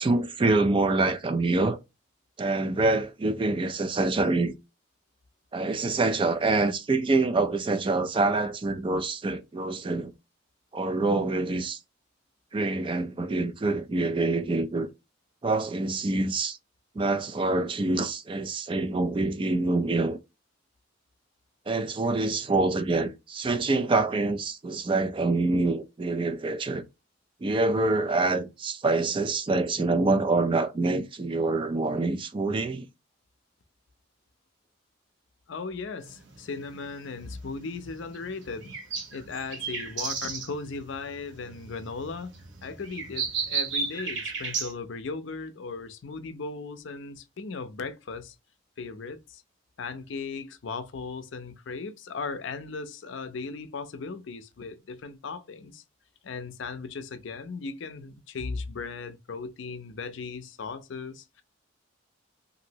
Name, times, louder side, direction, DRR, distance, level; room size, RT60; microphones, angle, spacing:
voice 1, 0.0-1.8 2.4-4.5 5.5-10.1 10.7-11.8 12.5-14.9 15.4-16.6 17.0-20.2 21.7-26.8 27.4-32.9, right 3 dB, 25° right, 0.3 m, -26 dB
voice 2, 35.5-38.7 39.1-42.3 42.6-48.3 48.8-49.4 49.8-55.8 56.2-61.4, left 4 dB, 65° left, 0.5 m, -37 dB
sound 1, 36.0-44.7, right 5 dB, 60° right, 0.9 m, -34 dB
2.9 x 2.6 x 2.7 m
head